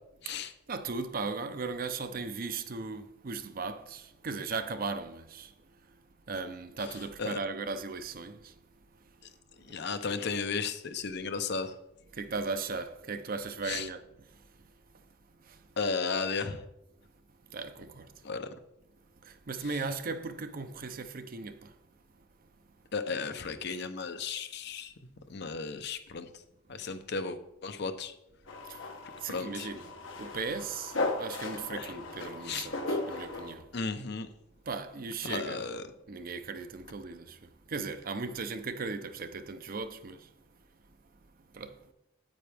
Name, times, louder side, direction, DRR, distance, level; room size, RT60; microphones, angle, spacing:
voice 1, 0.3-6.0 6.3-8.6 9.0-9.1 9.7-9.8 12.1-15.1 15.4-15.7 17.5-18.3 19.2-21.8 28.6-28.9 29.2-33.8 34.6-35.6 36.1-40.3 40.9-41.0 41.4-41.9, right 4 dB, 50° right, 0.6 m, -38 dB
voice 2, 9.7-11.7 13.7-13.9 15.8-16.6 18.2-18.5 22.9-24.9 25.3-26.3 26.7-28.1 29.3-29.7 31.8-31.9 32.5-32.7 33.7-34.3 35.2-35.8, left 4 dB, 60° left, 0.7 m, -34 dB
sound 1, 28.5-33.5, left 2 dB, 80° left, 1.2 m, -36 dB
9.1 x 8.7 x 3.5 m
head